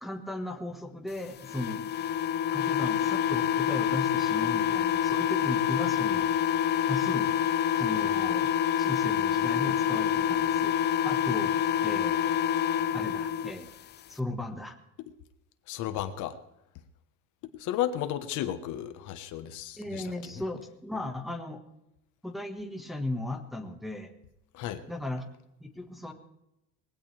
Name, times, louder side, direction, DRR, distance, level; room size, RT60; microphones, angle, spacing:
voice 1, 0.0-1.9 2.5-6.3 6.9-7.3 7.8-8.5 8.8-10.8 11.0-11.5 11.8-12.3 12.9-13.7 14.1-14.8 19.8-21.6 22.2-24.1 24.9-25.2 25.6-26.1, left 2 dB, ahead, 3 dB, 1.5 m, -36 dB
sound 1, 1.4-13.5, left 9 dB, 30° left, 0.5 m, -27 dB
voice 2, 15.7-16.4 17.5-20.1 24.5-24.8, left 11 dB, 55° left, 10 dB, 1.3 m, -33 dB
20.5 x 16.5 x 3.4 m, 0.86 s
cardioid pair, 140°, 35 cm